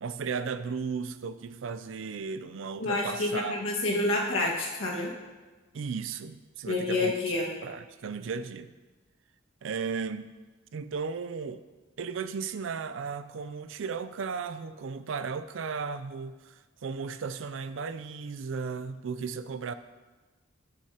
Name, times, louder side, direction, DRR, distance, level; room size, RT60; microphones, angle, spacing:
voice 1, 0.0-3.5 5.7-7.1 7.6-8.8 9.6-10.3 10.7-11.6 12.0-19.7, right 5 dB, 75° right, 12 dB, 0.4 m, -35 dB
voice 2, 2.8-5.1 6.7-7.5, left 2 dB, 85° left, -2 dB, 1.7 m, -28 dB
11.5 x 6.2 x 2.9 m, 1.2 s
head